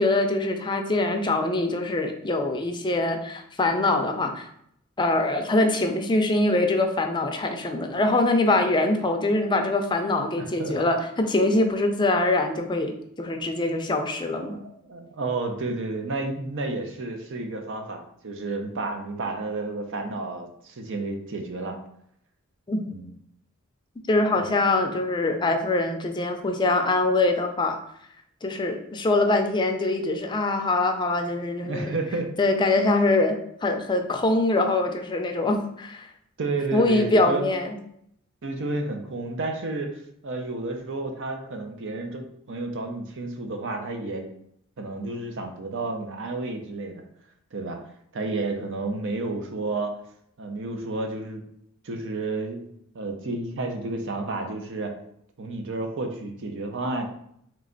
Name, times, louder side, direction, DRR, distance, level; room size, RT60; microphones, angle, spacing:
voice 1, 0.0-4.5 5.0-14.6 22.7-22.9 24.1-27.8 28.4-31.9 32.4-36.1 36.7-37.8, left 2 dB, 20° left, 5 dB, 0.5 m, -23 dB
voice 2, 10.4-10.7 13.6-13.8 14.4-21.8 22.9-23.1 24.4-24.5 31.7-32.3 32.7-32.9 36.4-37.4 38.4-44.2 44.8-47.0 47.5-47.8 48.1-49.9 50.4-51.4 51.8-52.6 52.9-54.9 55.4-57.1, right 2 dB, 60° right, 4 dB, 0.7 m, -31 dB
3.4 x 3.2 x 3.8 m, 0.71 s
head